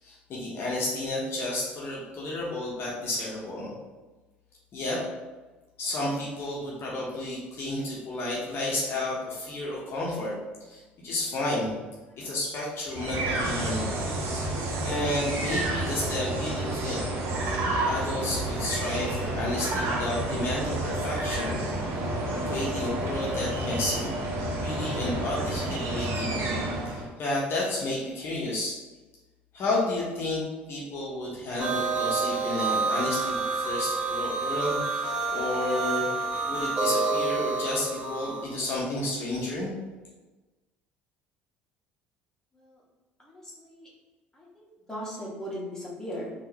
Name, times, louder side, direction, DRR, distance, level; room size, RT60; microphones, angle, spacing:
voice 1, 0.0-3.7 4.7-5.0 5.8-11.8 12.2-13.9 14.4-17.0 17.8-21.6 22.4-24.1 24.6-26.4 26.9-28.8 29.5-36.1 36.5-39.7, left 1 dB, 50° left, -4 dB, 0.8 m, -31 dB
sound 1, 12.9-27.1, right 1 dB, 60° right, 0.7 m, -30 dB
sound 2, 31.6-38.4, right 3 dB, 20° right, 1.0 m, -28 dB
voice 2, 43.2-43.9 44.3-46.3, equal, 10° left, -5 dB, 1.3 m, -38 dB
3.7 x 2.4 x 2.9 m, 1.2 s
hypercardioid pair, 65°, 5 cm